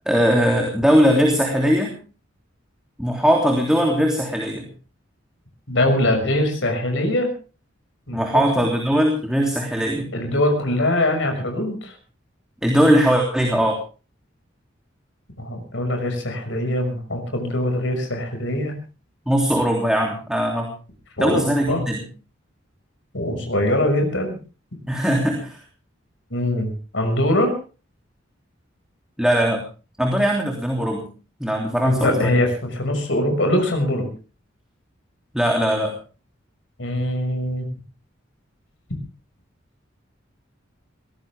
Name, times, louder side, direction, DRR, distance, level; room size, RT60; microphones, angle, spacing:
voice 1, 0.0-2.0 3.0-4.7 8.1-10.1 12.6-13.8 19.3-20.7 21.2-22.0 24.9-25.6 29.2-29.6 30.0-31.1 31.4-32.3 35.3-35.9, equal, 5° right, 1 dB, 3.1 m, -20 dB
voice 2, 5.7-7.3 8.1-8.2 8.6-8.7 10.1-11.9 15.4-18.7 21.2-21.4 21.7-21.8 23.1-24.4 26.3-27.5 31.8-34.1 36.8-37.7, left 1 dB, 70° left, 5 dB, 6.2 m, -22 dB
22.0 x 17.5 x 3.6 m, 0.35 s
head